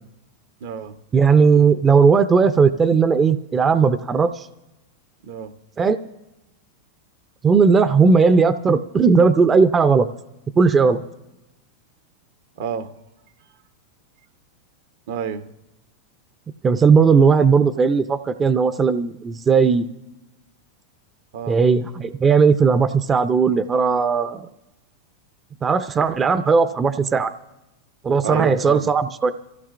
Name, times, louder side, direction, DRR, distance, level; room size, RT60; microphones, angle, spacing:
voice 1, 0.6-0.9 5.3-5.5 12.6-12.9 15.1-15.4 21.3-21.6 28.2-28.9, right 7 dB, 70° right, 10 dB, 0.9 m, -28 dB
voice 2, 1.1-4.5 5.8-6.0 7.4-10.1 10.6-11.0 16.6-19.9 21.5-24.5 25.6-27.3 28.0-29.3, right 5 dB, 20° right, 11 dB, 0.5 m, -17 dB
27.5 x 15.0 x 2.5 m, 0.95 s
supercardioid pair, 125°, 0 cm